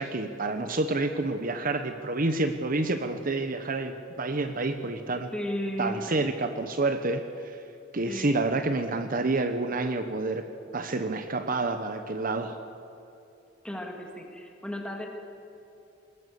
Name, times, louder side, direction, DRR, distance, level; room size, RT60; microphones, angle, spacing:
voice 1, 0.0-5.3 5.8-7.6 7.9-12.6, right 2 dB, 45° right, 8 dB, 1.0 m, -29 dB
voice 2, 5.1-6.2 8.0-8.4 13.6-15.1, left 1 dB, 5° left, 1 dB, 2.6 m, -35 dB
21.0 x 19.0 x 7.0 m, 2.7 s
head